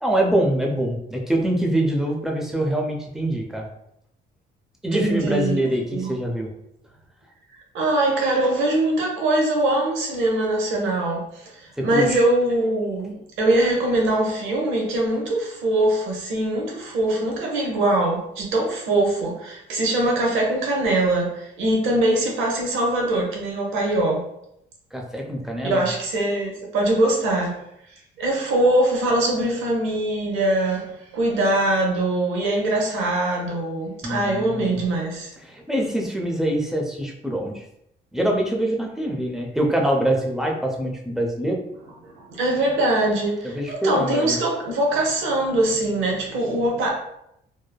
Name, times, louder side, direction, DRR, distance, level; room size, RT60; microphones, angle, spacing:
voice 1, 0.0-3.7 4.8-6.5 11.8-12.2 24.9-25.8 34.0-34.8 35.4-37.6 38.1-41.6 43.4-44.4, right 1 dB, ahead, 0 dB, 0.5 m, -24 dB
voice 2, 4.9-5.6 5.9-6.2 7.7-24.3 25.6-27.6 28.2-35.3 42.0-46.9, right 1 dB, 85° right, -1 dB, 0.8 m, -22 dB
3.1 x 2.1 x 2.2 m, 0.79 s
cardioid pair, 90°, 20 cm